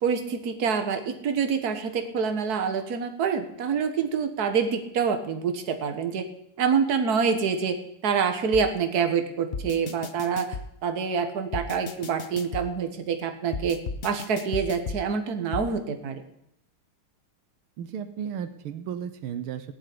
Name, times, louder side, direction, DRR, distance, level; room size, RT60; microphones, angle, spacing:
voice 1, 0.0-6.2 6.6-10.6 10.8-16.2, right 6 dB, 50° right, 7 dB, 1.8 m, -26 dB
sound 1, 8.5-8.7 9.5-10.7 11.5-12.7 13.5-15.0 15.5-15.7, left 4 dB, 60° left, 0.6 m, -34 dB
voice 2, 17.8-19.7, right 8 dB, 85° right, 10 dB, 1.8 m, -34 dB
16.0 x 7.7 x 9.6 m, 0.78 s
omnidirectional pair, 2.3 m